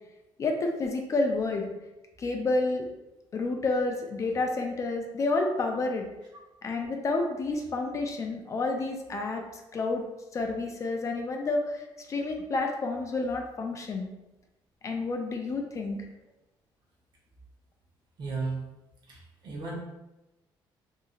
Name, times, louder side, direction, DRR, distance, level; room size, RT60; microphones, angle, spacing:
voice 1, 0.4-1.7 2.2-2.9 3.3-6.1 6.6-9.4 9.7-10.0 10.3-14.1 14.8-16.0, left 3 dB, 35° left, 3 dB, 0.4 m, -29 dB
voice 2, 18.2-18.6 19.1-19.8, right 3 dB, 60° right, -3 dB, 1.0 m, -34 dB
2.8 x 2.6 x 2.4 m, 0.99 s
cardioid pair, 115°, 9 cm